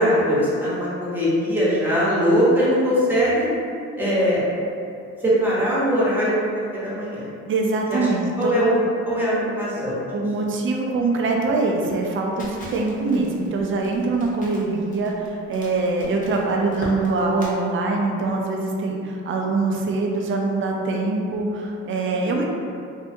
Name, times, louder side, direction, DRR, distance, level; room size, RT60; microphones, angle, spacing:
voice 1, 0.0-3.5 4.0-4.4 5.2-6.3 6.7-7.3 7.9-8.0 8.4-10.1 22.2-22.3, equal, 5° right, -9 dB, 0.9 m, -21 dB
voice 2, 7.5-8.5 10.1-22.5, right 3 dB, 45° right, 0 dB, 0.4 m, -23 dB
Crackle, 12.4-17.5, left 1 dB, 25° left, 0.7 m, -40 dB
2.7 x 2.2 x 2.6 m, 2.5 s
cardioid pair, 90°, 30 cm